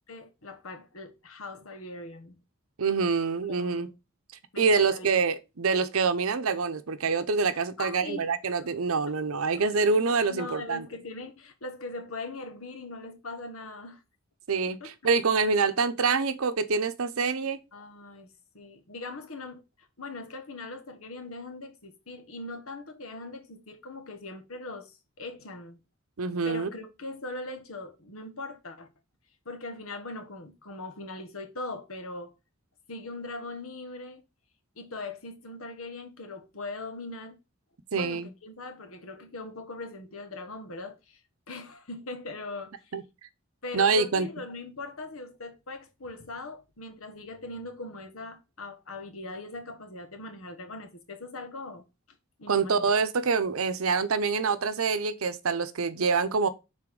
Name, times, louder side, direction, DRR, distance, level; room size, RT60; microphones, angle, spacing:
voice 1, 0.1-2.4 3.5-3.9 4.5-5.2 7.8-8.6 9.1-9.2 9.5-9.6 10.3-14.0 14.7-14.9 17.7-25.8 26.4-28.9 29.4-32.3 32.9-34.2 34.8-37.4 37.9-41.2 41.5-42.9 43.6-51.8 52.4-52.9, left 2 dB, 85° left, 1.4 m, -40 dB
voice 2, 2.8-3.9 4.6-10.9 14.5-17.6 26.2-26.7 37.9-38.3 42.9-43.0 43.7-44.3 52.5-56.5, right 4 dB, 90° right, 0.7 m, -26 dB
6.1 x 4.1 x 4.8 m
head